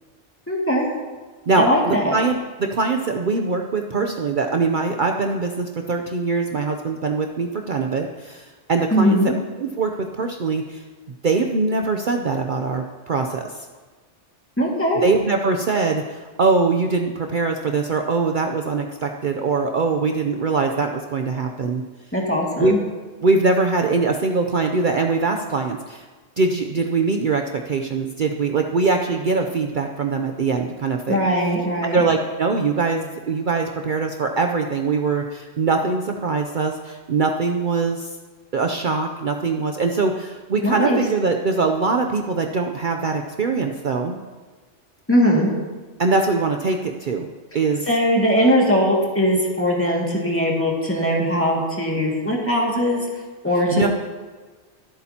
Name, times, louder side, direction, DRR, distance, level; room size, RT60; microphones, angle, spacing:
voice 1, 0.5-0.9 1.6-2.1 8.9-9.4 14.6-15.0 22.1-22.8 31.1-32.0 40.6-41.0 45.1-45.5 47.9-53.1 53.4-53.9, equal, 10° left, -2 dB, 2.1 m, -20 dB
voice 2, 1.5-9.2 9.6-10.8 11.2-13.5 15.0-21.8 22.6-22.8 23.2-26.0 26.4-31.3 31.9-38.1 38.5-44.2 46.0-47.3 47.5-47.9 53.7-53.9, right 4 dB, 50° right, 3 dB, 0.7 m, -22 dB
25.0 x 8.6 x 2.9 m, 1.4 s
omnidirectional pair, 1.2 m